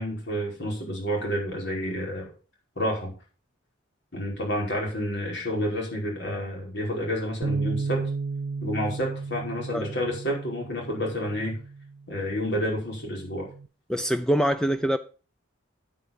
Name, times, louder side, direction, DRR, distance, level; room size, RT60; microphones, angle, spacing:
voice 1, 0.0-2.3 2.8-3.1 4.1-8.0 8.6-11.6 12.1-13.5, equal, 55° left, 5.1 m, -29 dB
Bass guitar, 7.4-13.7, right 4 dB, 60° right, 0.5 m, -34 dB
voice 2, 13.9-15.0, equal, 5° left, 0.4 m, -24 dB
9.3 x 8.6 x 5.3 m
head